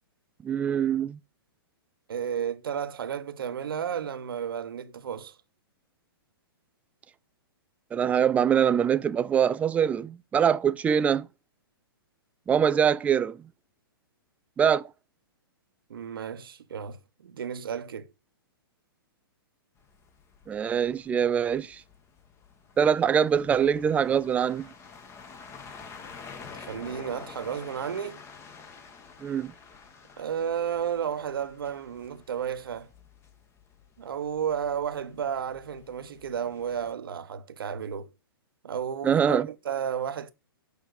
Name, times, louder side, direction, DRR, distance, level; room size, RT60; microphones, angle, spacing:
voice 1, 0.4-1.2 7.9-11.3 12.5-13.4 14.6-14.9 20.5-21.8 22.8-24.7 29.2-29.5 39.0-39.5, right 8 dB, 10° right, 0.3 m, -23 dB
voice 2, 2.1-5.4 15.9-18.1 26.5-28.2 30.2-32.9 34.0-38.1 38.6-40.3, right 8 dB, 65° right, 1.1 m, -32 dB
sound 1, 19.8-36.9, left 5 dB, 20° left, 1.4 m, -49 dB
6.8 x 5.5 x 6.4 m
figure-of-eight pair, 120°, 13 cm